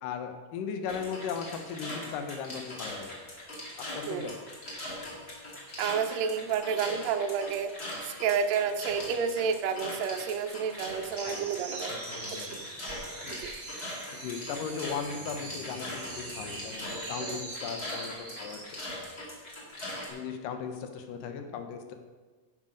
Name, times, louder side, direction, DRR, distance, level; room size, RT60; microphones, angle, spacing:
voice 1, 0.0-3.1 3.8-4.3 11.2-11.5 11.9-12.6 13.2-13.3 14.2-18.6 20.1-21.9, left 6 dB, 75° left, 6 dB, 2.4 m, -37 dB
sound 1, 0.9-20.1, left 1 dB, 30° left, 2.5 m, -41 dB
voice 2, 5.8-7.7 8.0-12.0 12.3-12.5 13.3-13.5 17.2-17.4, right 7 dB, 85° right, 6 dB, 1.5 m, -30 dB
sound 2, 11.1-18.7, right 2 dB, 35° right, 1.0 m, -42 dB
11.0 x 7.5 x 5.1 m, 1.3 s
omnidirectional pair, 4.1 m